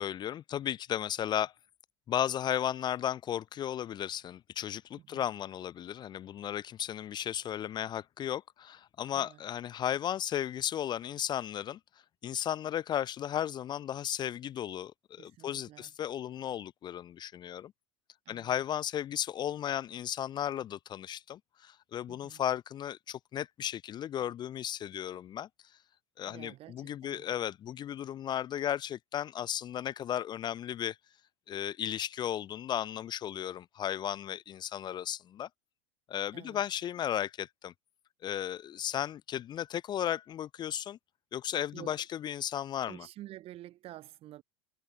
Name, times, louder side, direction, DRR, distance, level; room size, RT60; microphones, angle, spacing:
voice 1, 0.0-1.5 2.1-11.8 12.2-17.7 18.3-25.5 26.2-31.0 31.5-35.5 36.1-37.7 38.2-41.0 41.3-43.1, left 10 dB, 30° left, 0.6 m, -35 dB
voice 2, 15.2-15.9 18.2-18.5 22.1-22.4 26.2-27.3 36.3-36.6 41.7-42.0 42.8-44.4, right 14 dB, 45° right, 6.3 m, -50 dB
hypercardioid pair, 85°, 14 cm